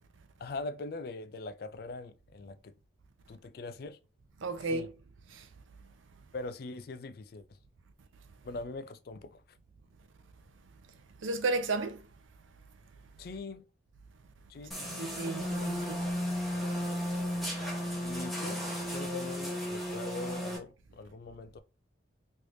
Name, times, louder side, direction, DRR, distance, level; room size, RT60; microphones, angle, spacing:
voice 1, 0.4-2.7 3.3-4.0 4.7-4.9 6.3-7.6 8.4-9.4 13.2-13.7 14.5-15.0 18.0-18.6 18.9-21.6, left 3 dB, 50° left, 0.3 m, -42 dB
voice 2, 4.4-4.9 5.3-5.5 11.2-12.0 14.8-16.0, right 3 dB, 80° right, 0.6 m, -33 dB
sound 1, 14.7-20.6, equal, ahead, 0.9 m, -34 dB
3.3 x 3.2 x 2.6 m
head